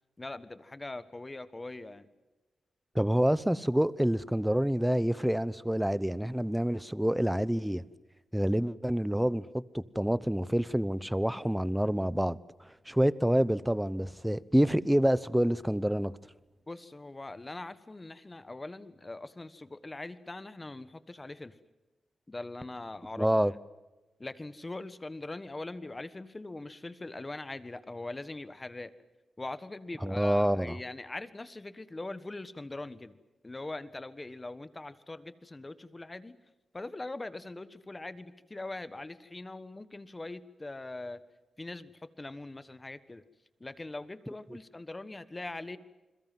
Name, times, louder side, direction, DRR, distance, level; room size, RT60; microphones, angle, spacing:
voice 1, 0.2-2.1 16.7-21.5 22.3-23.3 24.2-28.9 29.4-33.2 33.4-36.4 36.7-41.2 41.6-43.2 43.6-45.8, left 2 dB, 20° left, 1.4 m, -42 dB
voice 2, 2.9-7.8 8.3-12.4 12.9-16.1 23.2-23.5 30.0-30.8, equal, 5° right, 0.8 m, -27 dB
29.0 x 22.0 x 7.6 m
wide cardioid pair, 105°, 0 cm